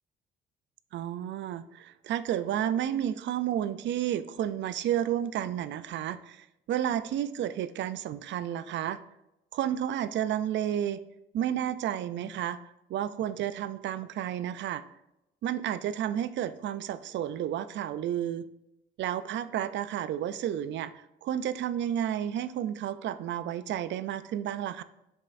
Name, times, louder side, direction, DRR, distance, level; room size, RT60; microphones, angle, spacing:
voice 1, 0.9-9.0 9.5-11.0 11.3-12.6 12.9-14.8 15.4-18.4 19.0-24.8, right 10 dB, 65° right, 14 dB, 0.4 m, -31 dB
7.2 x 5.5 x 2.6 m, 0.88 s
cardioid pair, 90°, 20 cm